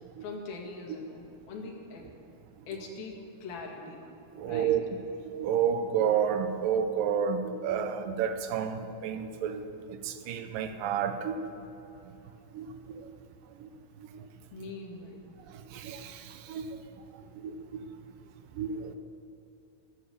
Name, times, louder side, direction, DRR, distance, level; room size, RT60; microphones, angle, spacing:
voice 1, 0.2-2.1 2.7-4.0 4.5-4.7 14.5-15.2, left 3 dB, 80° left, 1 dB, 3.8 m, -42 dB
voice 2, 4.3-4.8 5.2-9.6 9.9-11.5 12.5-13.1 13.6-13.7 14.1-14.2 15.5-16.8 17.4-17.9 18.6-19.0, right 8 dB, 80° right, 9 dB, 2.3 m, -31 dB
16.5 x 11.5 x 6.9 m, 3.0 s
omnidirectional pair, 4.2 m